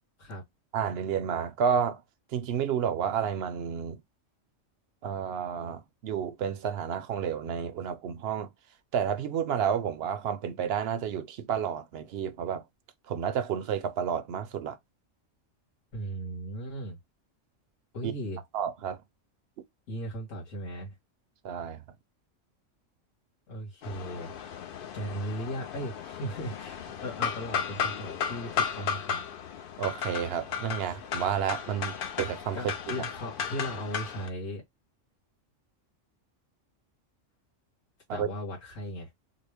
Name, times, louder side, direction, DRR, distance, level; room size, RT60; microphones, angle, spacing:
voice 1, 0.7-2.0 2.3-4.0 5.0-8.5 8.9-12.6 13.1-14.8 18.0-18.1 18.5-19.0 21.4-21.8 29.8-32.6 32.9-33.0 38.2-38.3, right 8 dB, 65° right, 0.7 m, -30 dB
voice 2, 15.9-17.0 17.9-18.4 19.9-20.9 23.5-24.3 24.9-29.2 32.5-34.6 38.1-39.1, equal, 90° left, 2.1 m, -37 dB
sound 1, 23.8-34.3, left 7 dB, 55° left, 0.7 m, -35 dB
3.9 x 2.2 x 3.4 m
omnidirectional pair, 1.3 m